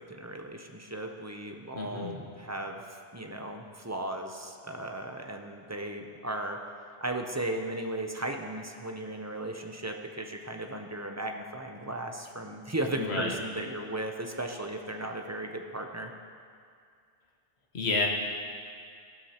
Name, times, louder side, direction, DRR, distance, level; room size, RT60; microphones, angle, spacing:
voice 1, 0.0-6.6 7.0-16.1, right 1 dB, 20° right, 3 dB, 0.5 m, -36 dB
voice 2, 1.7-2.2 13.0-13.3 17.7-18.1, left 3 dB, 70° left, 0 dB, 1.5 m, -30 dB
15.0 x 12.0 x 2.9 m, 2.3 s
omnidirectional pair, 1.2 m